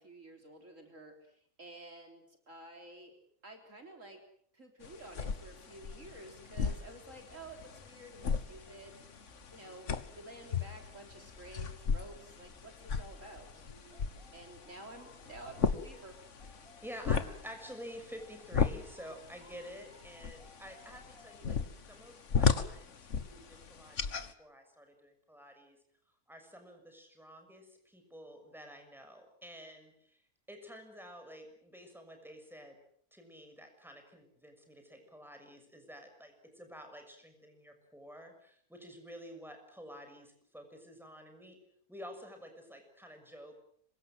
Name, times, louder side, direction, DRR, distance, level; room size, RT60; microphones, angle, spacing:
voice 1, 0.0-3.1 3.4-4.2 4.5-9.0 9.5-9.9 10.2-13.7 14.3-16.2, right 2 dB, 60° right, 4 dB, 4.1 m, -51 dB
sound 1, 4.8-24.3, left 6 dB, 55° left, 1.7 m, -36 dB
sound 2, 5.9-21.9, equal, 20° right, 6.6 m, -62 dB
voice 2, 16.8-21.6 21.9-24.1 24.4-25.8 26.3-30.2 30.5-32.8 33.1-41.6 41.9-43.6, equal, ahead, 5 dB, 6.3 m, -50 dB
26.5 x 23.5 x 7.6 m, 0.64 s
omnidirectional pair, 1.5 m